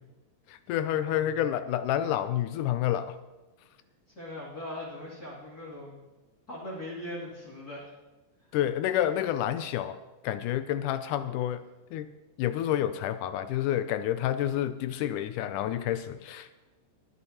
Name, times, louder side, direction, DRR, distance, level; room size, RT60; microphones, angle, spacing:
voice 1, 0.5-3.2 8.5-10.0 10.2-11.6 11.9-12.1 12.4-16.5, left 11 dB, 80° left, 12 dB, 1.9 m, -29 dB
voice 2, 4.1-6.0 6.5-7.9, left 1 dB, 30° left, -6 dB, 2.9 m, -40 dB
23.5 x 9.7 x 2.9 m, 1.1 s
omnidirectional pair, 4.0 m